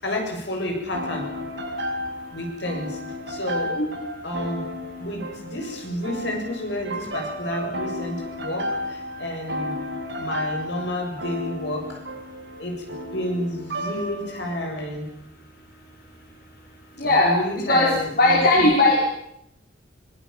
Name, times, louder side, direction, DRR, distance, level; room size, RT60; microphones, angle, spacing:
voice 1, 0.0-1.3 2.3-3.0 3.3-3.8 4.2-4.6 5.0-9.8 10.2-12.0 12.6-15.1 17.0-18.7, left 1 dB, 75° left, 2 dB, 7.8 m, -30 dB
sound 1, 0.9-14.6, left 1 dB, 75° right, 6.4 m, -33 dB
voice 2, 17.0-17.3 17.7-17.9 18.2-19.0, left 2 dB, 55° left, -3 dB, 5.8 m, -17 dB
24.0 x 22.0 x 7.4 m, 0.76 s
head